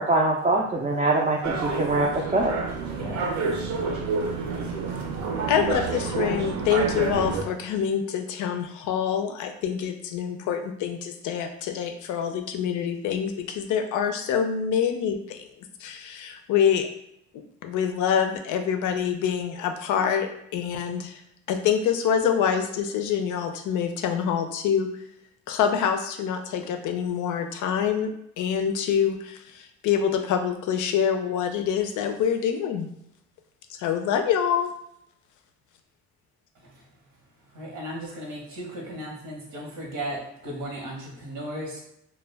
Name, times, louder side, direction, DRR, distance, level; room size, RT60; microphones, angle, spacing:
voice 1, 0.0-2.5, right 2 dB, 25° right, -2 dB, 0.3 m, -23 dB
sound 1, 1.4-7.4, right 4 dB, 70° right, 0.6 m, -28 dB
voice 2, 2.9-3.3 37.5-41.8, right 1 dB, 85° right, -2 dB, 0.9 m, -36 dB
voice 3, 5.5-15.5 15.8-16.9 17.3-21.2 21.5-24.9 25.5-28.1 28.4-32.9 33.7-34.7, left 8 dB, 75° left, 6 dB, 0.5 m, -26 dB
2.2 x 2.2 x 3.2 m, 0.77 s
cardioid pair, 90°, 30 cm